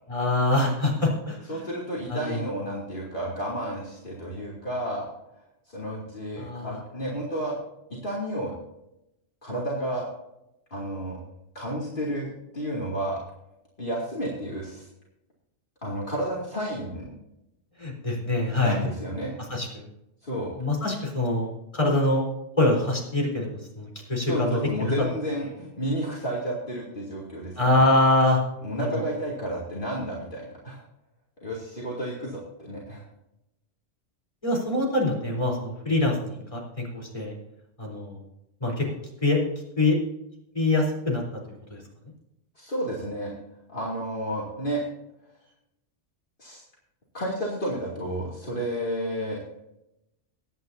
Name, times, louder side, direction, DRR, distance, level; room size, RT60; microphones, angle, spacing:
voice 1, 0.1-1.4 2.1-2.4 6.4-6.7 17.8-18.8 19.5-19.8 20.6-22.3 22.6-24.5 24.8-24.9 27.6-28.4 28.8-29.0 34.4-37.3 37.8-38.2 38.6-38.9 39.2-39.4 39.8-40.0 40.5-41.2 41.7-41.8, left 2 dB, 25° left, -1 dB, 4.1 m, -24 dB
voice 2, 1.5-5.1 5.7-7.6 7.9-8.5 9.4-10.1 10.7-11.2 11.5-13.2 13.8-14.9 15.8-17.1 18.6-19.3 20.2-20.5 24.2-27.9 28.6-30.8 31.4-33.0 42.6-43.3 43.7-44.8 46.4-46.6 47.1-49.4, right 1 dB, 45° left, -5 dB, 3.0 m, -31 dB
22.5 x 9.3 x 2.8 m, 0.87 s
omnidirectional pair, 1.2 m